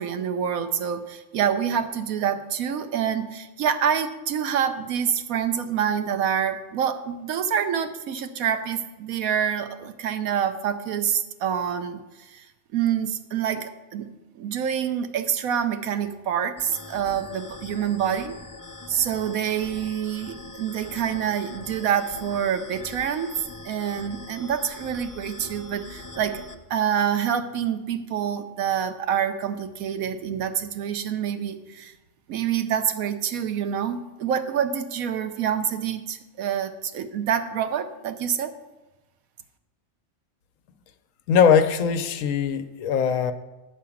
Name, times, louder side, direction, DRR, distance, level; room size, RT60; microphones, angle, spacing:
voice 1, 0.0-12.5 12.7-14.1 14.4-18.4 18.9-23.3 23.6-26.4 26.7-31.9 32.3-38.5, right 8 dB, 85° right, 9 dB, 1.2 m, -27 dB
sound 1, 16.6-26.5, left 2 dB, 30° left, 0.3 m, -42 dB
voice 2, 41.3-43.3, left 7 dB, 75° left, 10 dB, 1.0 m, -20 dB
9.2 x 4.8 x 7.1 m, 1.1 s
omnidirectional pair, 1.4 m